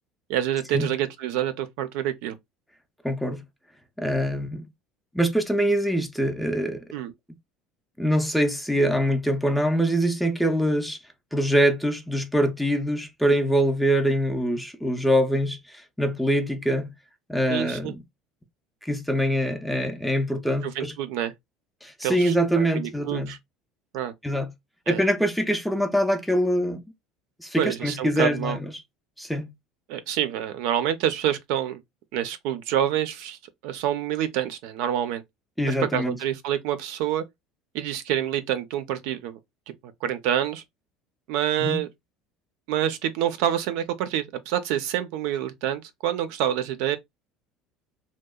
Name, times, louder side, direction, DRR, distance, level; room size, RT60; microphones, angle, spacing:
voice 1, 0.3-2.4 6.9-7.1 17.5-17.9 20.6-21.3 22.0-23.4 23.9-24.1 24.9-25.0 27.6-28.6 29.9-31.8 32.1-35.2 35.7-37.2 37.7-39.4 40.0-40.6 41.3-41.9 42.7-47.0, right 11 dB, 75° right, 0.5 m, -27 dB
voice 2, 3.0-3.4 4.0-4.7 5.1-6.8 8.0-11.0 11.3-15.6 16.0-16.9 17.3-18.0 18.8-20.9 21.8-23.3 24.2-24.5 24.9-26.8 27.4-28.7 29.2-29.5 35.6-36.2 41.6-41.8, equal, ahead, 0.4 m, -24 dB
2.8 x 2.0 x 2.2 m
cardioid pair, 150°, 0 cm